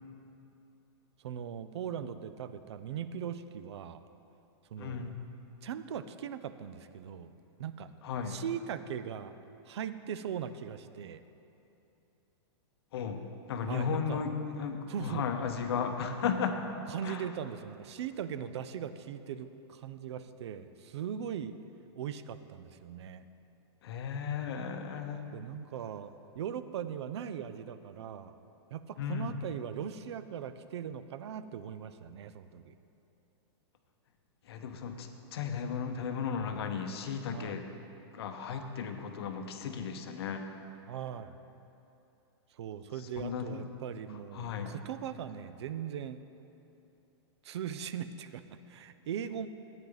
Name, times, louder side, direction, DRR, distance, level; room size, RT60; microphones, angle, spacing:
voice 1, 1.2-4.0 4.7-5.2 5.6-7.3 7.6-7.9 8.3-9.3 9.7-11.2 13.7-14.2 14.9-15.3 16.9-21.6 21.9-23.2 25.3-28.3 28.7-32.8 37.3-37.6 40.9-41.3 42.5-46.2 47.4-49.5, right 8 dB, 75° right, 12 dB, 0.5 m, -39 dB
voice 2, 4.8-5.2 8.0-8.4 12.9-13.2 13.5-16.6 17.0-17.3 23.8-25.2 29.0-29.4 34.5-37.7 38.1-40.5 43.2-43.6 44.3-44.7, left 6 dB, 65° left, 6 dB, 0.9 m, -35 dB
13.0 x 8.9 x 4.0 m, 2.9 s
supercardioid pair, 165°, 14 cm